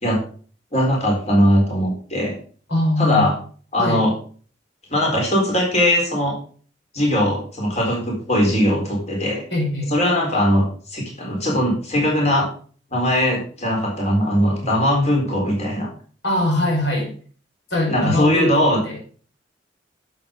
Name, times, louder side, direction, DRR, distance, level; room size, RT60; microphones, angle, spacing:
voice 1, 0.7-2.3 3.0-3.3 3.7-4.1 4.9-6.4 6.9-9.4 9.9-12.5 12.9-15.9 17.9-18.8, equal, 40° left, -1 dB, 4.1 m, -20 dB
voice 2, 2.7-3.3 3.8-4.0 9.5-9.9 16.2-17.1 17.7-19.0, left 1 dB, 85° left, 0 dB, 5.0 m, -22 dB
11.5 x 7.8 x 5.2 m, 0.43 s
head